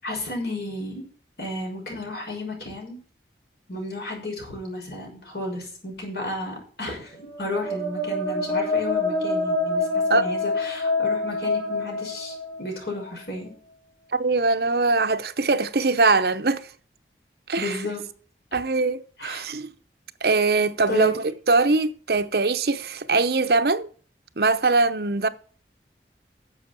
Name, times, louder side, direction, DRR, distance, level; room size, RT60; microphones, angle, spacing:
voice 1, 0.0-1.1 1.4-3.0 3.7-13.5 17.6-18.0 19.2-19.5 20.9-21.1, left 2 dB, 65° left, 6.2 m, -33 dB
sound 1, 7.3-13.0, left 2 dB, 5° left, 4.1 m, -26 dB
voice 2, 14.2-16.6 17.5-17.8 18.5-19.7 20.2-23.9 24.4-25.3, right 3 dB, 60° right, 0.8 m, -22 dB
11.0 x 7.6 x 6.0 m
head